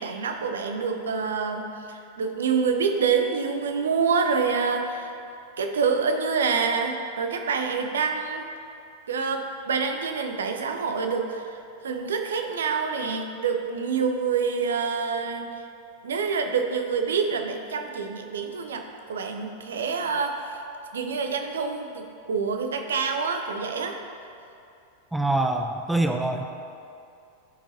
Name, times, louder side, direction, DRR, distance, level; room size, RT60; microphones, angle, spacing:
voice 1, 0.0-5.1 5.6-8.4 9.1-15.5 16.0-20.6 20.9-24.0, right 5 dB, 65° right, 5 dB, 0.6 m, -27 dB
voice 2, 25.1-26.5, right 2 dB, 5° right, 4 dB, 0.4 m, -24 dB
12.5 x 4.6 x 2.7 m, 2.5 s
figure-of-eight pair, 90°, 0 cm